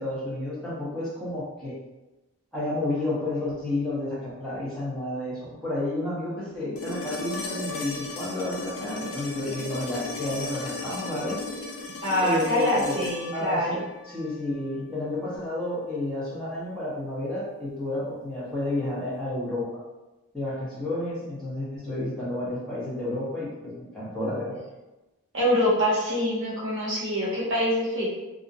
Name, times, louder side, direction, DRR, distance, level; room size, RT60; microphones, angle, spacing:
voice 1, 0.0-1.8 2.5-11.4 12.2-13.0 13.3-19.8 20.3-24.6, left 1 dB, 5° left, -9 dB, 0.7 m, -31 dB
sound 1, 6.8-14.8 16.9-17.0, left 3 dB, 75° left, 0.4 m, -36 dB
voice 2, 12.0-13.8 25.3-28.1, equal, 55° right, -6 dB, 0.9 m, -25 dB
2.4 x 2.0 x 2.5 m, 1.0 s
head